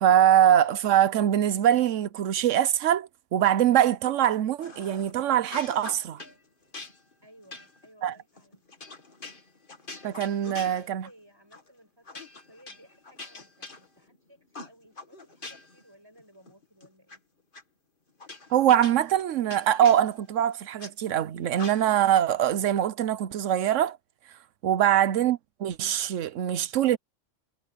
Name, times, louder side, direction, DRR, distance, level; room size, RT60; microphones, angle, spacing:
voice 1, 0.0-6.2 8.0-8.1 10.0-11.0 18.5-24.0 24.6-27.0, right 10 dB, 85° right, 1.1 m, -23 dB
sound 1, 4.6-5.1 5.4-6.4 6.7-11.2 11.5-11.7 12.1-14.2 14.5-15.8 16.2-17.2 17.5-17.6 18.2-20.9 21.5-22.1, left 3 dB, 45° left, 2.2 m, -44 dB
voice 2, 7.2-8.7 10.5-17.2, equal, 20° right, 7.9 m, -57 dB
omnidirectional pair, 1.3 m